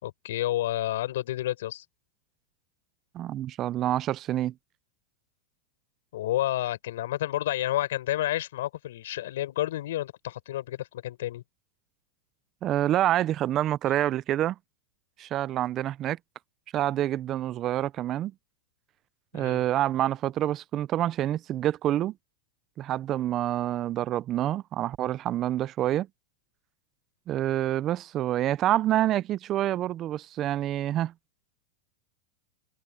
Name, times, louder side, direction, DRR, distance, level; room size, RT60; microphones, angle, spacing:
voice 1, 0.0-1.8 6.1-11.4 19.3-19.6, left 14 dB, 75° left, 5.0 m, -30 dB
voice 2, 3.1-4.5 12.6-14.6 15.2-16.2 16.7-18.3 19.3-22.1 22.8-26.1 27.3-31.1, right 13 dB, 35° right, 0.5 m, -27 dB
hypercardioid pair, 130°, 0 cm